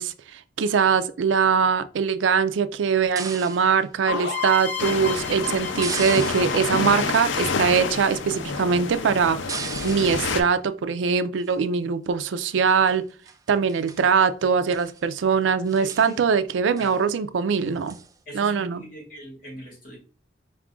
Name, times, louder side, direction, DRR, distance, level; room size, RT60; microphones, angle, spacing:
voice 1, 0.0-9.5 9.8-13.1 13.5-18.0 18.3-18.8, right 6 dB, 90° right, 0.4 m, -22 dB
sound 1, 3.2-3.8 5.8-6.8 9.5-10.4 11.4-11.8 12.4-13.0 13.3-13.4 13.7-14.1 14.6-15.0 15.3-15.4 15.7-16.2 16.8-17.0 17.9-18.1, right 5 dB, 20° right, 0.4 m, -36 dB
sound 2, 4.1-7.8, left 5 dB, 70° left, 1.0 m, -32 dB
sound 3, 4.8-10.4, left 4 dB, 90° left, 0.5 m, -28 dB
voice 2, 15.8-16.2 16.8-17.1 18.3-20.0, equal, 50° left, 2.3 m, -41 dB
4.7 x 2.4 x 3.6 m
head